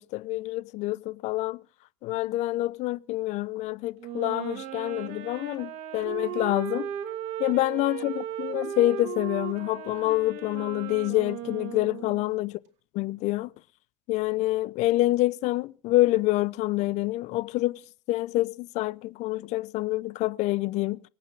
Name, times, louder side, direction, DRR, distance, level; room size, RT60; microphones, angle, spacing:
voice 1, 0.0-1.6 2.0-6.9 7.4-12.5 13.0-13.5 14.1-17.8 18.1-21.0, left 18 dB, 60° left, 0.6 m, -27 dB
Wind instrument woodwind instrument, 4.0-12.4, right 10 dB, 60° right, 2.5 m, -36 dB
25.0 x 8.6 x 4.7 m
supercardioid pair, 95°, 13 cm